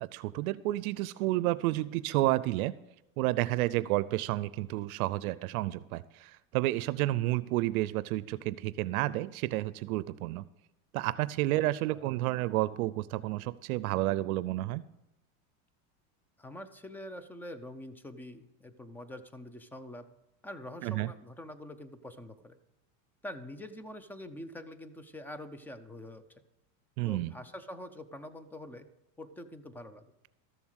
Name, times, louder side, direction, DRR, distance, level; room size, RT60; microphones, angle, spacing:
voice 1, 0.0-2.7 3.2-10.4 10.9-14.8 20.8-21.1 27.0-27.3, right 17 dB, 80° right, 16 dB, 0.6 m, -30 dB
voice 2, 16.4-20.1 20.4-22.6 23.2-26.4 27.0-28.9 29.2-30.1, left 1 dB, 5° left, 12 dB, 0.3 m, -45 dB
13.5 x 7.2 x 6.3 m, 0.91 s
supercardioid pair, 135°, 43 cm